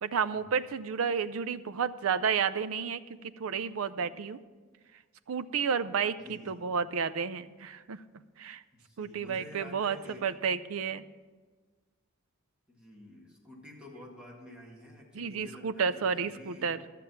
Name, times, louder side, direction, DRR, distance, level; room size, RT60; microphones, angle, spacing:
voice 1, 0.0-4.4 5.3-8.0 8.4-8.6 9.0-10.0 10.2-11.1 15.1-16.8, right 6 dB, 85° right, 14 dB, 0.5 m, -31 dB
voice 2, 6.1-6.6 8.7-10.2 12.7-16.7, left 1 dB, 5° right, -3 dB, 2.0 m, -50 dB
13.0 x 7.5 x 5.8 m, 1.4 s
head